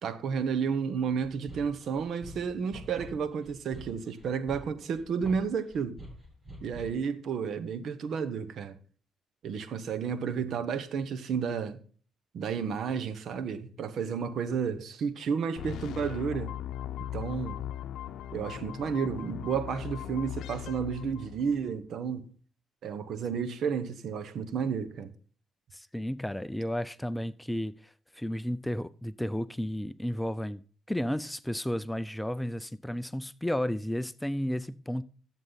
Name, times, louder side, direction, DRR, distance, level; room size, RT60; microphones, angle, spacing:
voice 1, 0.0-6.0 6.6-8.8 9.4-11.8 12.3-16.5 17.1-17.6 18.3-22.2 22.8-25.1, right 6 dB, 65° right, 1.0 m, -32 dB
sound 1, 1.2-7.1, right 1 dB, 30° right, 3.1 m, -46 dB
sound 2, 15.6-21.7, left 11 dB, 80° left, 0.7 m, -39 dB
voice 2, 25.7-30.6 30.9-35.0, equal, 5° left, 0.4 m, -33 dB
13.5 x 7.3 x 4.0 m
cardioid pair, 90°, 0 cm